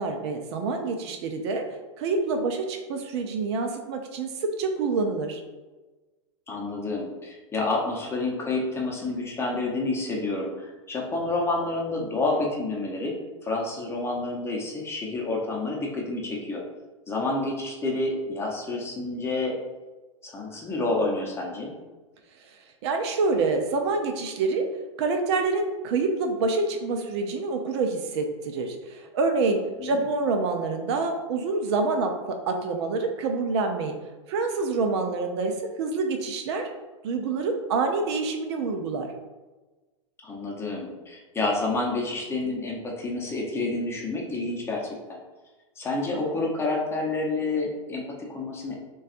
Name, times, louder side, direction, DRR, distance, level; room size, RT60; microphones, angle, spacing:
voice 1, 0.0-1.7 2.0-5.4 22.8-24.7 25.0-33.9 34.3-36.7 37.0-39.1, right 3 dB, 55° right, 5 dB, 0.6 m, -27 dB
voice 2, 6.5-13.1 13.4-16.6 17.1-19.6 20.2-21.7 29.8-30.0 40.2-44.8 45.1-45.2 45.8-48.8, left 2 dB, 15° left, -1 dB, 0.7 m, -29 dB
6.2 x 2.3 x 2.5 m, 1.2 s
hypercardioid pair, 120°, 17 cm